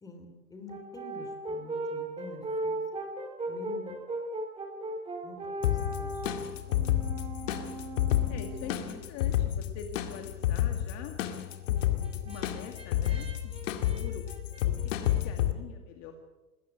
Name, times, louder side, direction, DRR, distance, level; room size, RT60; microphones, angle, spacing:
voice 1, 0.0-2.8 3.5-3.9 5.2-6.5 8.6-9.0, left 2 dB, 10° left, 5 dB, 3.3 m, -47 dB
Brass instrument, 0.7-9.0 11.5-15.2, right 2 dB, 10° right, 3.4 m, -38 dB
sound 1, 5.6-15.5, left 12 dB, 55° left, 2.3 m, -30 dB
voice 2, 6.7-7.5 8.3-11.2 11.7-13.6 13.9-14.2 14.6-16.1, left 7 dB, 35° left, 4 dB, 2.2 m, -45 dB
20.5 x 17.5 x 7.9 m, 1.1 s
hypercardioid pair, 145°, 46 cm